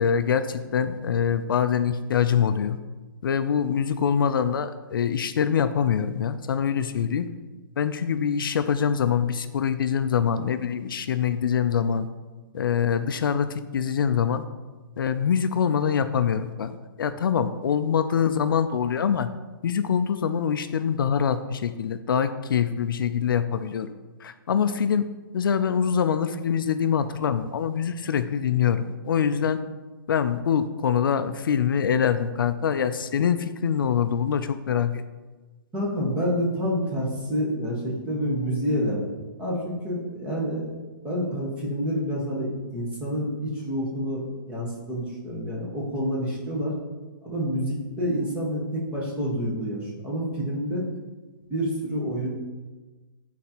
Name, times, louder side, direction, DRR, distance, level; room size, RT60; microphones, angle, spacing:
voice 1, 0.0-2.8 3.2-7.3 7.8-12.1 12.5-14.4 15.0-19.3 19.6-23.9 24.2-25.1 25.3-29.6 30.1-35.0, left 7 dB, 65° left, 11 dB, 0.4 m, -24 dB
voice 2, 35.7-40.7 41.0-46.7 47.2-50.9 51.5-52.3, equal, 10° right, -5 dB, 1.1 m, -28 dB
9.3 x 4.0 x 2.9 m, 1.3 s
hypercardioid pair, 170°, 12 cm